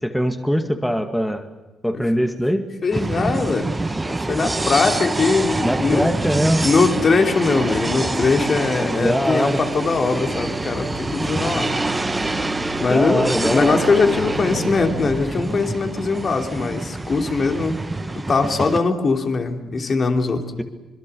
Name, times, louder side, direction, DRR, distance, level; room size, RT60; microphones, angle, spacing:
voice 1, 0.0-1.5 1.8-2.7 5.6-6.7 8.0-8.1 8.8-9.6 12.9-13.8, equal, 5° left, 6 dB, 2.0 m, -22 dB
voice 2, 2.8-6.1 6.6-11.8 12.8-20.4, left 4 dB, 40° left, 4 dB, 3.0 m, -21 dB
sound 1, 2.9-18.8, right 2 dB, 20° right, 0.9 m, -26 dB
sound 2, 7.0-15.1, left 2 dB, 25° left, 2.9 m, -36 dB
25.5 x 22.5 x 7.0 m, 1.2 s
cardioid pair, 90°, 0 cm